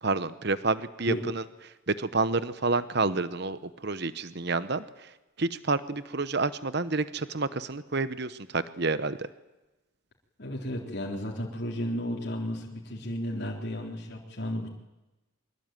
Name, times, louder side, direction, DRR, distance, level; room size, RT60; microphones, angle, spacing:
voice 1, 0.0-9.3, right 3 dB, 50° right, 14 dB, 1.0 m, -29 dB
voice 2, 10.4-14.7, equal, 50° left, -2 dB, 3.8 m, -33 dB
24.5 x 22.0 x 9.2 m, 1.0 s
head